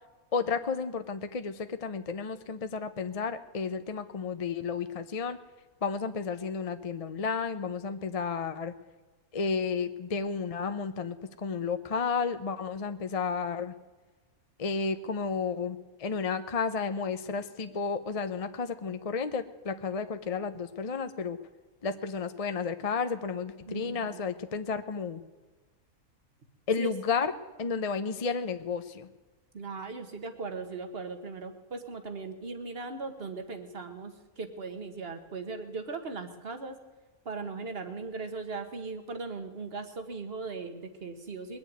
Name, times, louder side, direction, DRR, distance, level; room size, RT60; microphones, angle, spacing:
voice 1, 0.3-5.4 5.8-8.7 9.3-13.7 14.6-21.4 21.8-25.2 26.7-27.3 27.6-29.1, left 5 dB, 35° left, 9 dB, 0.6 m, -32 dB
voice 2, 23.7-24.2 26.8-26.9 29.5-36.8 37.2-41.6, right 4 dB, 45° right, 7 dB, 1.6 m, -38 dB
21.0 x 7.1 x 9.4 m, 1.2 s
omnidirectional pair, 1.5 m